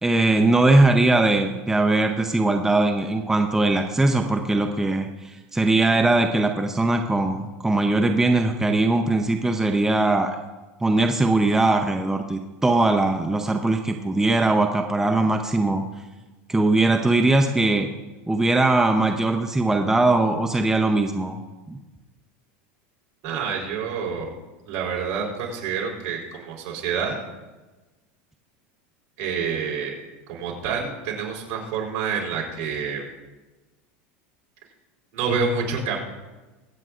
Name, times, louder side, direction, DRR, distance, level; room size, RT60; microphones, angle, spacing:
voice 1, 0.0-10.4 10.8-15.8 16.5-17.9 18.3-21.4 21.7-21.8, right 2 dB, 5° right, 4 dB, 0.7 m, -20 dB
voice 2, 23.2-24.3 24.7-27.2 29.2-30.0 30.3-33.1 35.1-36.0, right 5 dB, 60° right, -1 dB, 3.9 m, -28 dB
23.5 x 8.8 x 2.5 m, 1.2 s
supercardioid pair, 130°, 7 cm